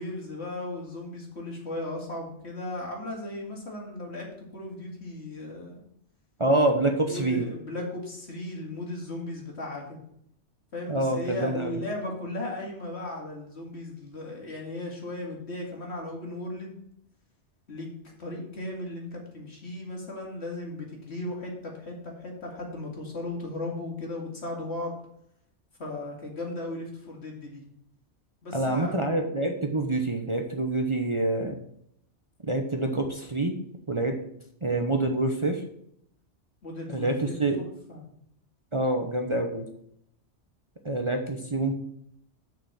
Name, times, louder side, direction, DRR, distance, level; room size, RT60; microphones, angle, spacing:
voice 1, 0.0-5.8 7.1-10.0 10.7-16.7 17.7-17.9 18.2-24.9 25.8-27.6 28.4-29.0 36.6-37.4 37.9-38.0, left 2 dB, 65° left, -1 dB, 2.7 m, -36 dB
voice 2, 6.4-7.4 10.9-11.8 28.5-31.5 32.4-33.6 33.9-34.1 34.6-35.6 36.9-37.6 38.7-39.7 40.8-41.7, right 2 dB, 30° right, 3 dB, 0.9 m, -26 dB
6.8 x 6.1 x 7.3 m, 0.71 s
omnidirectional pair, 1.2 m